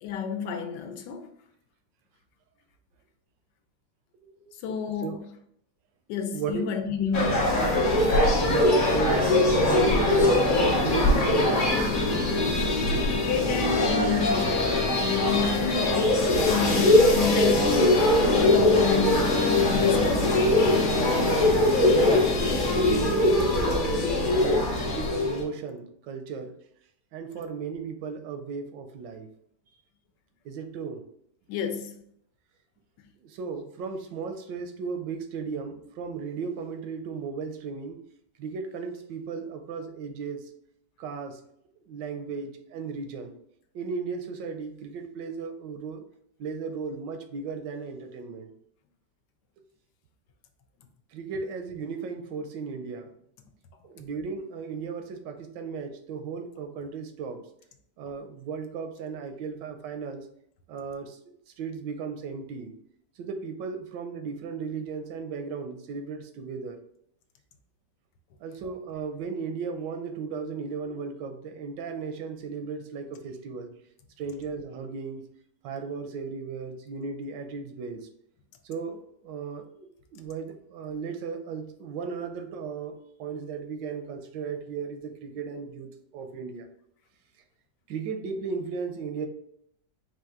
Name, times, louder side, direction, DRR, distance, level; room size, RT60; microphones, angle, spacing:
voice 1, 0.0-1.3 4.6-5.2 6.1-7.6 12.5-18.0 18.4-20.4 31.5-31.9, left 5 dB, 80° left, 1.2 m, -30 dB
voice 2, 4.2-4.5 5.0-5.2 6.3-6.7 8.4-9.4 9.7-11.7 21.8-22.4 22.7-26.5 27.1-29.3 30.4-31.0 33.2-38.0 38.4-40.4 41.0-41.4 41.9-43.3 43.7-46.0 46.4-48.5 51.1-53.1 53.8-57.4 58.0-60.3 60.7-61.2 61.6-62.7 63.2-66.8 68.4-73.7 74.2-75.3 75.6-78.1 78.6-86.7 87.9-89.3, right 5 dB, 85° right, 1.3 m, -35 dB
sound 1, 7.1-25.4, left 2 dB, 50° left, 0.6 m, -22 dB
4.4 x 2.5 x 3.6 m
omnidirectional pair, 1.9 m